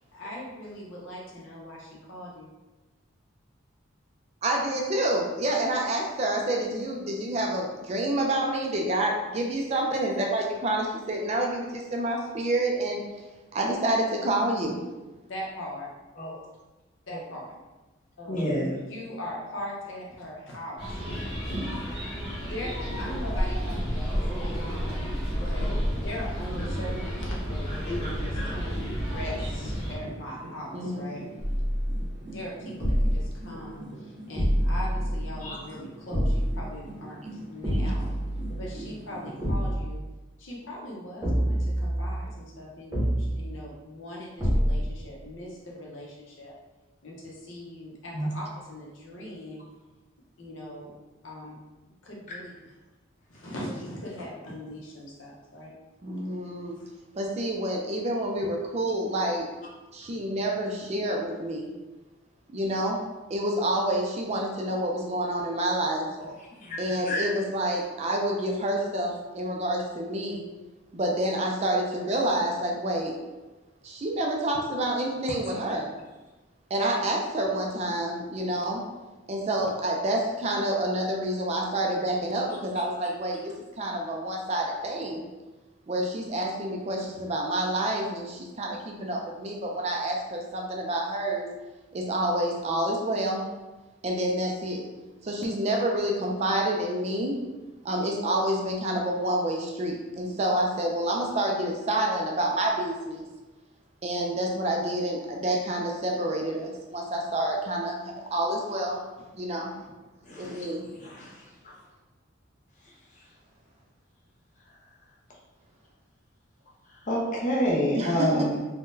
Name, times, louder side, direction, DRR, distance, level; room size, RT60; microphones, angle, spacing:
voice 1, 0.1-2.5 15.3-15.9 17.1-17.6 18.2-20.8 22.4-24.2 24.6-31.2 32.3-38.2 38.6-40.0 40.4-46.5 47.0-49.6 50.4-50.9 51.2-51.6 52.0-52.5 53.3-55.7, left 1 dB, 70° left, -3 dB, 0.8 m, -40 dB
voice 2, 4.4-13.0 13.5-14.8 30.7-31.1 37.6-37.9 56.0-56.8 57.2-59.5 59.9-61.7 62.5-63.0 63.3-66.1 66.8-70.4 70.9-73.2 73.8-75.9 76.7-78.8 79.3-85.3 85.9-91.5 91.9-93.5 94.0-94.9 95.2-97.4 97.8-103.3 104.0-109.0 109.3-109.7 110.4-110.8 118.0-118.6, right 1 dB, 30° right, 0 dB, 0.3 m, -28 dB
voice 3, 18.3-18.7 35.4-35.6 48.1-48.3 66.2-66.3 66.6-67.3 110.3-110.7 111.0-111.7 117.0-118.6, equal, 40° left, -4 dB, 0.6 m, -28 dB
sound 1, 20.8-30.0, equal, 20° left, 1.4 m, -31 dB
sound 2, 22.5-39.7, right 1 dB, 65° right, 0.8 m, -44 dB
sound 3, 31.4-32.2 32.8-33.4 34.4-35.4 36.1-36.7 37.6-38.7 39.4-40.0 41.2-42.3 42.9-43.6 44.4-45.0, equal, 15° right, 0.7 m, -26 dB
3.6 x 2.1 x 2.6 m, 1.1 s
head